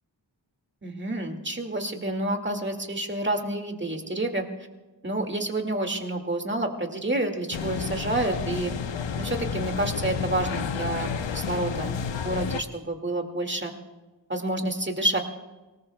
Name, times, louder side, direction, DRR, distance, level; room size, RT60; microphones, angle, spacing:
voice 1, 0.8-4.5 5.0-8.7 9.2-13.7 14.3-15.2, right 1 dB, 25° right, 3 dB, 2.1 m, -29 dB
sound 1, 7.5-12.6, left 6 dB, 80° left, 0.8 m, -31 dB
26.0 x 19.0 x 2.3 m, 1.2 s
wide cardioid pair, 65°, 44 cm